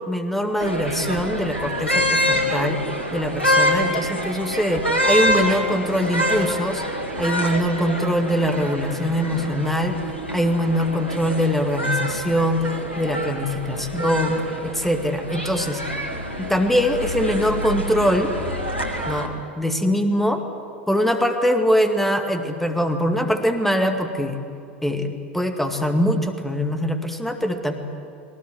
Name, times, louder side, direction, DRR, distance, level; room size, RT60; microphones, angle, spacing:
voice 1, 0.1-2.8 3.1-6.8 7.2-10.0 10.3-15.8 16.4-18.3 19.1-20.4 20.9-24.4 24.8-27.7, equal, 5° left, 5 dB, 2.2 m, -22 dB
sound 1, 0.6-19.3, equal, 90° left, 2.4 m, -26 dB
22.0 x 20.0 x 9.5 m, 2.5 s
figure-of-eight pair, 80°, 6 cm